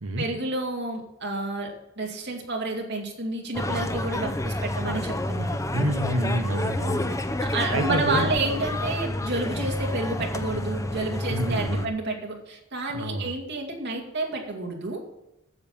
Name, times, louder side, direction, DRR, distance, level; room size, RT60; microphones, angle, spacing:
voice 1, 0.2-5.6 7.4-15.1, right 2 dB, 55° right, 1 dB, 2.4 m, -30 dB
sound 1, 3.5-11.9, left 1 dB, 15° left, 0.6 m, -29 dB
voice 2, 5.7-8.3 11.3-11.9 12.9-13.3, right 1 dB, 75° right, 7 dB, 1.1 m, -28 dB
9.8 x 7.3 x 7.3 m, 0.89 s
head